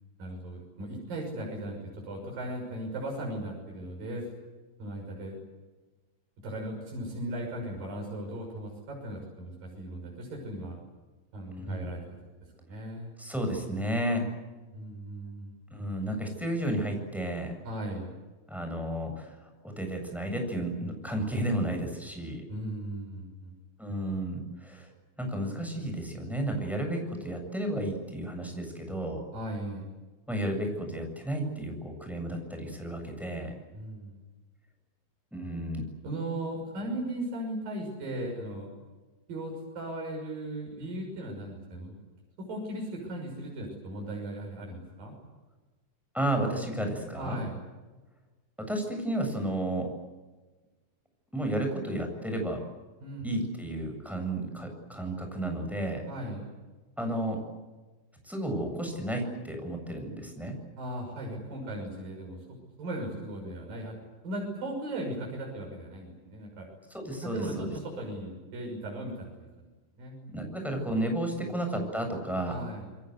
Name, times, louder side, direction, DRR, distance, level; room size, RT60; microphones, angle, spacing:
voice 1, 0.2-4.2 4.8-5.4 6.4-10.8 11.3-12.2 12.6-13.1 14.7-15.6 17.6-18.1 22.5-23.6 29.3-29.9 33.7-34.2 36.0-38.7 39.3-42.0 42.4-45.2 47.2-47.6 53.0-53.5 56.1-56.5 60.8-64.0 64.2-66.7 67.2-69.7 70.0-70.5 71.3-71.5 72.5-72.9, right 1 dB, 75° right, 0 dB, 7.9 m, -37 dB
voice 2, 11.6-11.9 13.2-14.2 15.7-17.5 18.5-22.4 23.8-24.9 25.2-29.2 30.3-33.5 35.3-35.8 46.1-47.4 48.6-49.9 51.3-52.6 53.2-56.0 57.0-57.4 58.2-60.6 66.9-67.7 70.3-72.6, right 1 dB, ahead, 3 dB, 7.5 m, -32 dB
29.0 x 22.5 x 8.2 m, 1.2 s
omnidirectional pair, 4.0 m